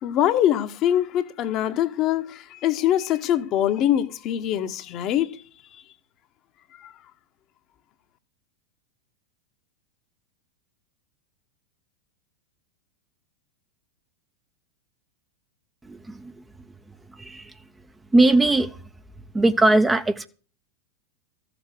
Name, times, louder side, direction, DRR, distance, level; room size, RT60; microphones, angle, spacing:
voice 1, 0.0-5.4 6.8-6.9, left 11 dB, 35° left, 1.3 m, -23 dB
voice 2, 15.8-16.4 17.2-17.5 18.1-18.8 19.3-20.3, right 2 dB, 10° right, 1.0 m, -20 dB
15.0 x 7.2 x 7.8 m
figure-of-eight pair, 90°, 0 cm